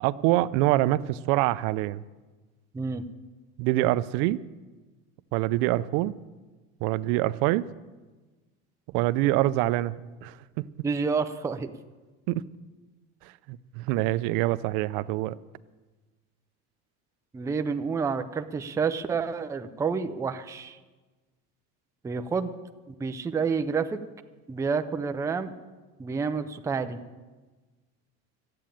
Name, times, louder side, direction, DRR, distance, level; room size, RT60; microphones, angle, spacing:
voice 1, 0.0-2.0 3.6-4.4 5.3-6.1 6.8-7.7 8.9-9.9 10.2-10.7 12.3-12.4 13.5-15.4, right 16 dB, 70° right, 16 dB, 0.6 m, -25 dB
voice 2, 10.8-11.7 17.3-20.8 22.0-22.5 22.9-24.0 24.5-25.5 26.0-27.0, right 5 dB, 10° right, 8 dB, 0.4 m, -29 dB
13.5 x 8.6 x 9.1 m, 1.2 s
cardioid pair, 150°, 34 cm